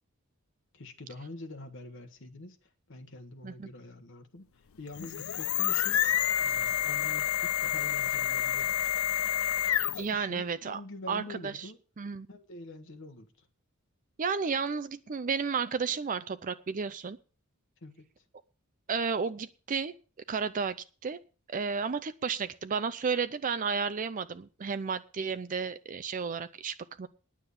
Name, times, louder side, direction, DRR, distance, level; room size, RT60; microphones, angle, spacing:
voice 1, 0.7-6.1 6.4-8.8 9.9-11.8 12.3-13.5 17.8-18.2, left 2 dB, 60° left, 1.2 m, -46 dB
sound 1, 4.9-10.2, left 11 dB, 80° left, 0.5 m, -29 dB
voice 2, 10.0-10.8 11.1-11.7 12.0-12.3 14.2-17.2 18.9-19.9 20.3-20.8 21.0-21.2 21.5-27.1, right 5 dB, 40° right, 0.5 m, -32 dB
9.9 x 7.3 x 8.4 m
head